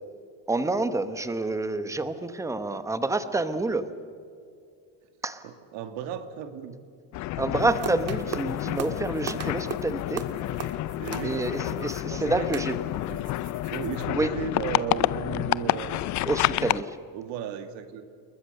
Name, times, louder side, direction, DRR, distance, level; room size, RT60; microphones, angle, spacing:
voice 1, 0.5-3.9 5.2-5.4 7.4-10.2 11.2-12.7 14.1-14.3 16.2-17.0, right 2 dB, 5° right, 11 dB, 0.9 m, -28 dB
voice 2, 5.4-6.8 11.0-12.5 13.0-13.2 13.6-16.0 17.1-18.0, right 8 dB, 75° right, 9 dB, 2.2 m, -35 dB
sound 1, 7.1-16.8, left 16 dB, 45° left, 0.5 m, -29 dB
sound 2, 7.5-14.0, right 7 dB, 35° right, 1.8 m, -40 dB
28.5 x 22.0 x 6.6 m, 2.3 s
cardioid pair, 175°, 44 cm